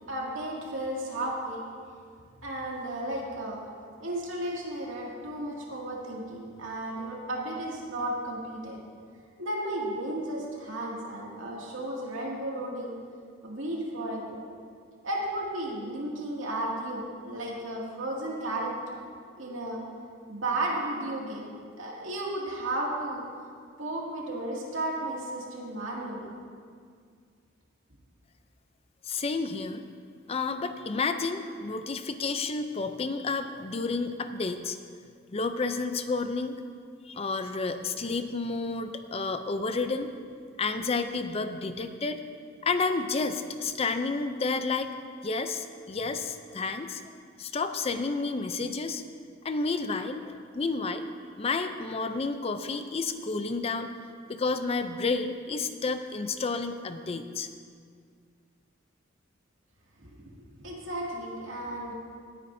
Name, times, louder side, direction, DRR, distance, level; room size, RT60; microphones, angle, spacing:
voice 1, 0.1-1.6 2.4-3.6 4.0-8.8 9.4-12.9 13.4-14.4 15.0-19.0 19.4-19.8 20.3-21.5 21.8-23.2 23.8-26.3 60.0-61.9, right 1 dB, 85° right, -3 dB, 2.3 m, -34 dB
voice 2, 29.1-29.8 30.3-34.8 35.3-36.6 37.1-40.1 40.6-42.2 42.6-45.0 45.2-47.0 47.4-49.0 49.4-51.1 51.4-53.9 54.3-57.5, left 3 dB, 30° left, 9 dB, 0.5 m, -30 dB
18.0 x 9.6 x 2.7 m, 2.1 s
head